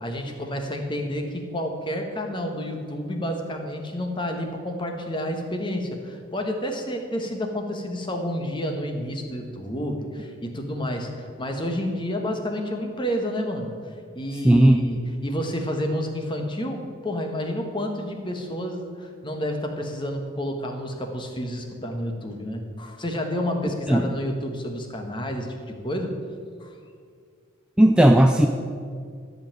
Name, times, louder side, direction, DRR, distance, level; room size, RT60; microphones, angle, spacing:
voice 1, 0.0-13.7 14.1-26.2 26.6-26.8, equal, 25° left, 3 dB, 1.3 m, -30 dB
voice 2, 14.4-14.9 23.9-24.1 27.8-28.5, right 1 dB, 5° right, 4 dB, 0.3 m, -15 dB
13.5 x 5.5 x 8.9 m, 2.1 s
head